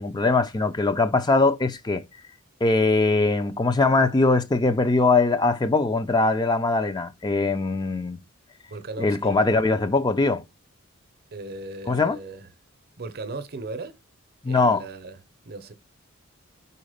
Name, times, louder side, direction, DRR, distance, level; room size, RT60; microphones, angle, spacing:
voice 1, 0.0-2.0 2.6-8.2 9.0-10.4 11.9-12.2 14.4-14.8, left 3 dB, 20° left, 0.5 m, -21 dB
voice 2, 8.7-9.4 11.3-12.5 13.0-14.0 14.5-15.2 15.5-15.7, right 2 dB, 50° right, 0.8 m, -37 dB
4.8 x 4.2 x 5.0 m
head